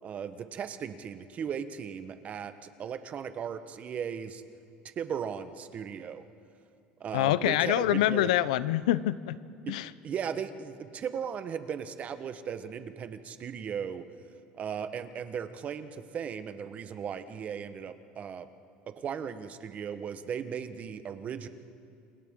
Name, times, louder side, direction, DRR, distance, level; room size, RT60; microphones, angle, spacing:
voice 1, 0.0-4.4 4.8-6.2 7.0-8.3 9.7-9.8 10.0-14.1 14.5-18.5 18.9-21.5, right 7 dB, 40° right, 10 dB, 1.2 m, -37 dB
voice 2, 7.1-9.4 9.7-9.9, left 14 dB, 90° left, 17 dB, 0.6 m, -25 dB
29.0 x 26.0 x 3.8 m, 2.5 s
supercardioid pair, 110°, 4 cm